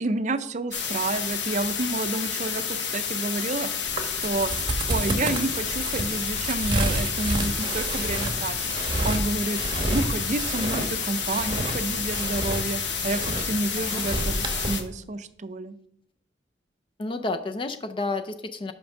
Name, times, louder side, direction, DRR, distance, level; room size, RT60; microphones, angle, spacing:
voice 1, 0.0-3.7 4.0-4.5 4.9-8.7 9.0-9.6 9.9-15.7, right 2 dB, 45° right, 12 dB, 0.5 m, -29 dB
sound 1, 0.7-14.8, left 7 dB, 80° left, 1.0 m, -30 dB
sound 2, 3.9-14.8, right 2 dB, 25° right, 1.0 m, -30 dB
voice 2, 17.0-18.7, left 3 dB, 30° left, 8 dB, 0.4 m, -31 dB
6.0 x 5.2 x 6.3 m, 0.73 s
head